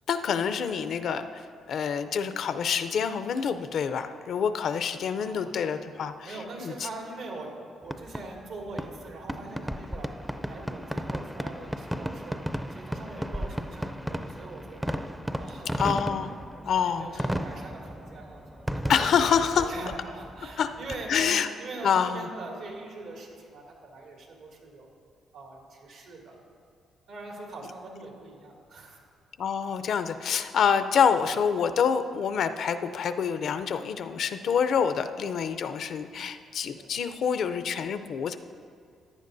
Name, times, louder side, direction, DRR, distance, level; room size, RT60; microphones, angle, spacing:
voice 1, 0.1-1.4 1.7-6.7 15.8-16.3 16.6-17.3 18.9-19.7 20.6-20.7 21.1-21.5 21.8-22.3 29.4-38.4, left 7 dB, 65° left, 10 dB, 0.5 m, -27 dB
voice 2, 5.2-5.7 6.2-12.4 12.7-15.0 15.4-15.7 16.6-19.0 19.4-21.3 21.6-24.9 25.3-26.4 27.1-29.0 31.2-31.3 36.8-37.0, right 2 dB, 90° right, -1 dB, 2.4 m, -42 dB
Fireworks, 7.8-21.4, equal, 5° right, 0.4 m, -35 dB
15.0 x 10.5 x 2.6 m, 2.3 s
cardioid pair, 90°, 0 cm